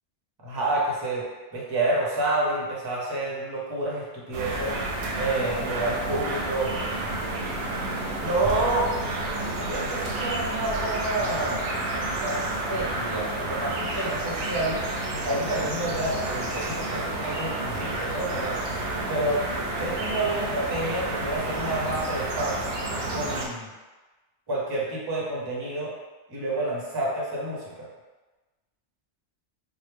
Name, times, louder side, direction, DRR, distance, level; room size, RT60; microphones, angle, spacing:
voice 1, 0.4-4.8 5.2-6.7 8.2-8.9 9.6-11.6 12.0-12.4 12.7-14.8 15.2-18.5 19.1-19.4 19.8-22.7 23.1-23.7 24.5-25.9 26.3-27.7, right 2 dB, 25° right, -5 dB, 0.6 m, -29 dB
sound 1, 4.3-23.5, right 2 dB, 65° right, 0.8 m, -30 dB
3.0 x 2.1 x 3.3 m, 1.2 s
omnidirectional pair, 1.2 m